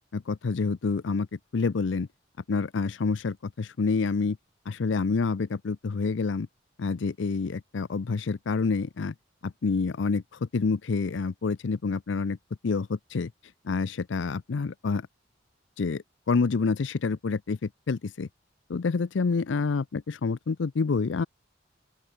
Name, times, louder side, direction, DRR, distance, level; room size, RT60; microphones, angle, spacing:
voice 1, 0.1-1.3 1.5-2.1 2.5-4.4 4.7-6.5 6.8-9.1 9.4-12.4 12.6-13.3 13.6-15.1 15.8-18.3 18.7-21.3, left 4 dB, 85° left, 0.5 m, -28 dB
open air
head